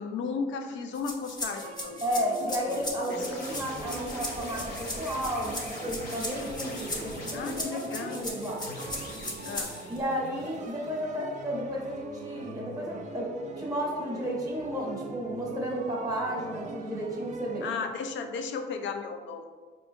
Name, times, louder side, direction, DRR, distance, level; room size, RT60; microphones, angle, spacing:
voice 1, 0.0-2.0 2.4-2.5 2.8-3.4 7.3-8.3 9.4-9.7 17.6-19.5, left 5 dB, 70° left, 6 dB, 0.5 m, -35 dB
sound 1, 0.9-10.0, left 1 dB, 20° left, 0.7 m, -38 dB
sound 2, 1.4-17.7, right 4 dB, 40° right, 0.4 m, -43 dB
voice 2, 2.0-8.6 9.9-13.3 13.6-17.6, equal, 15° right, -3 dB, 0.9 m, -33 dB
sound 3, 3.1-11.2, left 1 dB, 50° left, 0.9 m, -43 dB
4.1 x 2.6 x 2.7 m, 1.4 s
cardioid pair, 90°, 20 cm